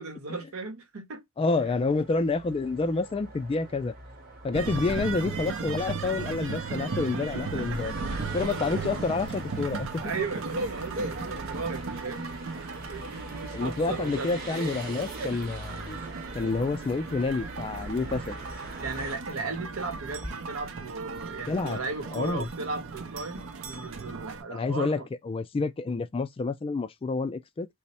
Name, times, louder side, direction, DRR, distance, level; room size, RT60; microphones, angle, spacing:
voice 1, 0.0-1.2 1.6-1.8 7.6-9.0 10.0-12.4 12.9-14.4 18.8-25.1, right 3 dB, 90° right, 0.9 m, -36 dB
voice 2, 1.4-3.9 4.4-7.9 8.3-10.1 13.5-16.0 16.3-18.4 21.5-21.8 22.1-22.5 24.5-25.0 25.3-27.7, left 3 dB, 25° left, 0.3 m, -28 dB
sound 1, 1.5-19.2, right 2 dB, 45° right, 1.0 m, -43 dB
sound 2, 4.5-24.4, right 4 dB, 65° right, 0.5 m, -36 dB
sound 3, 9.7-20.3, equal, 10° right, 0.7 m, -47 dB
3.1 x 2.1 x 4.1 m
head